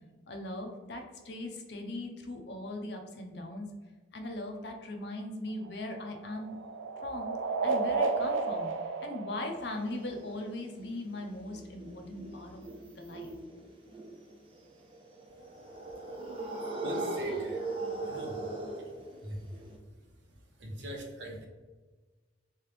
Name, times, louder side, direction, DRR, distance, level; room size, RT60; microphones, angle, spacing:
voice 1, 0.3-3.7 4.1-6.6 7.0-7.4 7.6-12.6 13.0-13.3, left 1 dB, 60° left, 3 dB, 0.6 m, -39 dB
sound 1, 5.5-10.2, right 4 dB, 85° right, 0.4 m, -33 dB
sound 2, 9.4-19.7, right 2 dB, 25° right, 0.6 m, -39 dB
voice 2, 16.8-17.7 18.0-18.4 19.2-19.4 20.6-21.5, right 1 dB, 70° right, 0 dB, 0.8 m, -40 dB
3.6 x 3.1 x 3.3 m, 1.3 s
head